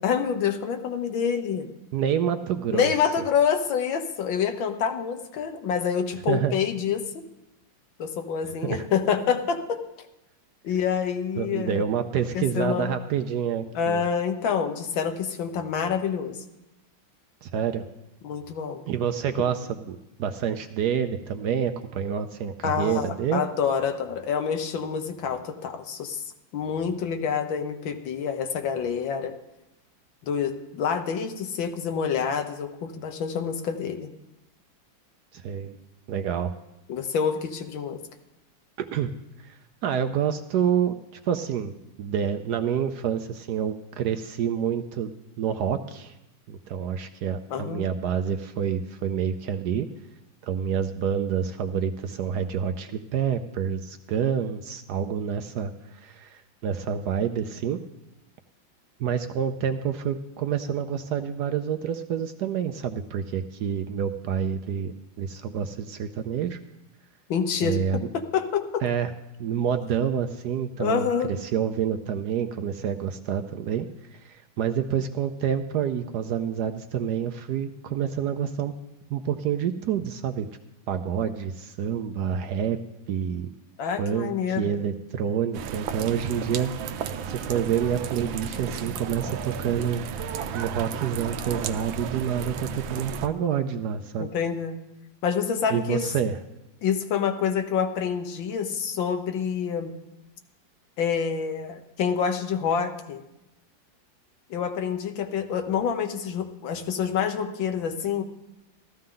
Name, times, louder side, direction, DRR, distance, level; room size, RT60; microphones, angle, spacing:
voice 1, 0.0-1.7 2.7-7.2 8.0-9.8 10.6-11.8 12.4-12.9 13.8-16.4 18.2-18.8 22.6-26.2 26.5-29.3 30.2-34.1 36.9-38.0 47.5-47.9 67.3-67.8 68.3-68.8 70.8-71.3 83.8-84.7 94.2-94.8 95.2-96.0 96.8-99.9 101.0-103.2 104.5-108.2, left 7 dB, 80° left, 7 dB, 1.7 m, -27 dB
voice 2, 1.9-2.9 6.3-6.6 8.4-8.9 11.4-14.0 17.4-17.8 18.9-23.4 35.3-35.8 36.1-36.5 38.8-39.1 39.4-40.9 41.2-46.1 46.5-49.9 50.4-57.8 59.0-66.6 67.6-68.0 68.8-69.1 69.4-73.9 74.1-78.7 79.1-80.5 80.9-82.8 83.1-83.5 84.0-90.0 90.5-94.3 95.7-96.4, right 8 dB, 70° right, 8 dB, 1.0 m, -28 dB
sound 1, 85.5-93.3, right 7 dB, 85° right, 1.5 m, -33 dB
14.5 x 14.0 x 3.8 m, 0.92 s
omnidirectional pair, 2.1 m